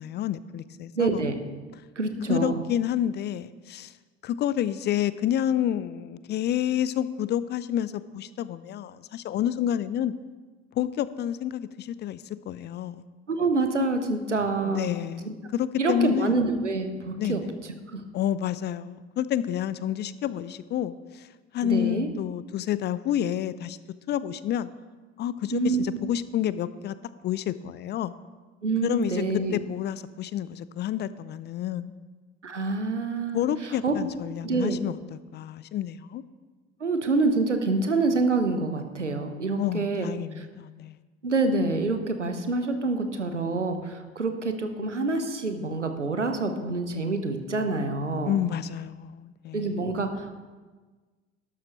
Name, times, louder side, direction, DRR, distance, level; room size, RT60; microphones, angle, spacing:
voice 1, 0.0-1.2 2.3-3.9 4.2-10.1 10.8-13.0 14.6-16.3 17.2-17.5 18.1-21.3 21.5-23.8 24.1-24.7 25.2-26.9 27.2-28.1 28.8-29.2 29.5-31.9 33.3-36.2 39.6-41.0 48.2-49.8, left 10 dB, 30° left, 16 dB, 0.4 m, -29 dB
voice 2, 1.0-1.4 2.0-2.6 13.3-14.9 15.3-15.4 15.8-17.4 17.9-18.0 21.6-22.1 25.5-25.8 28.6-29.6 32.4-33.9 34.4-34.8 36.8-40.1 40.4-40.5 41.2-48.3 49.5-50.3, right 3 dB, 90° right, 7 dB, 0.9 m, -26 dB
12.5 x 11.5 x 3.0 m, 1.3 s
figure-of-eight pair, 60°, 35 cm